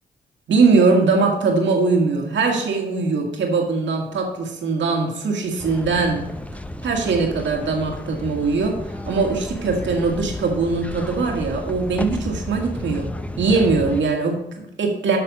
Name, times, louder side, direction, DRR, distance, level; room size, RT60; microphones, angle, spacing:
voice 1, 0.5-6.3 6.8-8.8 9.1-13.1 13.4-15.2, right 4 dB, 70° right, 1 dB, 2.0 m, -21 dB
sound 1, 5.6-14.0, left 1 dB, 5° left, 0.8 m, -32 dB
8.6 x 6.0 x 5.2 m, 0.90 s
supercardioid pair, 45°, 19 cm